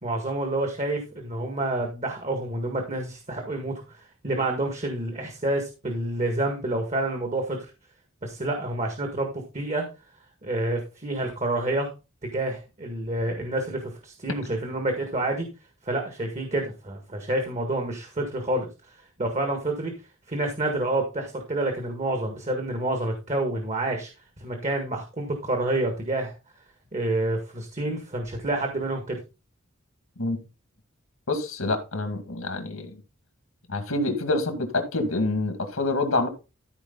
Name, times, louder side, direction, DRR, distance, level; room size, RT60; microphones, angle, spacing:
voice 1, 0.0-7.6 8.2-9.8 10.4-11.9 12.3-15.5 15.8-19.9 20.3-24.1 24.4-26.3 26.9-29.2, right 2 dB, 35° right, 1.8 m, -28 dB
voice 2, 31.3-32.9 33.7-36.3, left 2 dB, 80° left, 2.0 m, -26 dB
14.0 x 4.8 x 3.9 m
head